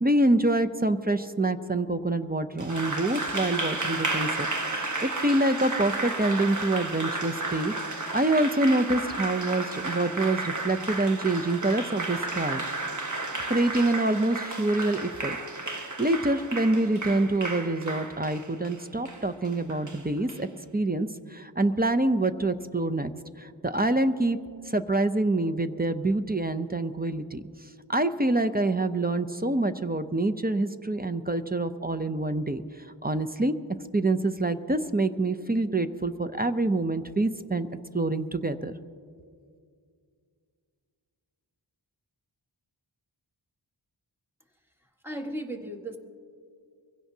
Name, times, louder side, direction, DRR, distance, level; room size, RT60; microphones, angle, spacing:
voice 1, 0.0-4.5 5.0-7.7 8.1-12.6 13.5-15.4 15.7-20.5 20.7-23.1 23.4-24.4 24.7-27.4 27.9-33.5 33.9-37.7 37.9-38.7, right 2 dB, 20° right, 9 dB, 0.5 m, -26 dB
Applause, 2.6-20.4, right 2 dB, 40° right, 1.1 m, -33 dB
voice 2, 45.0-46.0, right 1 dB, 5° right, 3 dB, 1.4 m, -35 dB
23.0 x 16.5 x 2.8 m, 2.2 s
wide cardioid pair, 45°, 45 cm